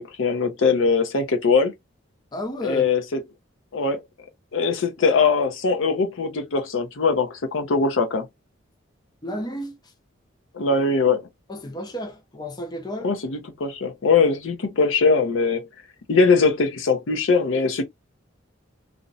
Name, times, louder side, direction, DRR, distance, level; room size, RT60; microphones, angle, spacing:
voice 1, 0.0-1.7 2.6-3.2 3.7-4.0 4.5-8.3 10.5-11.2 13.0-15.7 16.1-17.8, left 4 dB, 75° left, 0.6 m, -21 dB
voice 2, 2.3-2.8 9.2-9.9 11.5-13.1, equal, 20° left, 0.5 m, -32 dB
2.5 x 2.1 x 2.6 m
head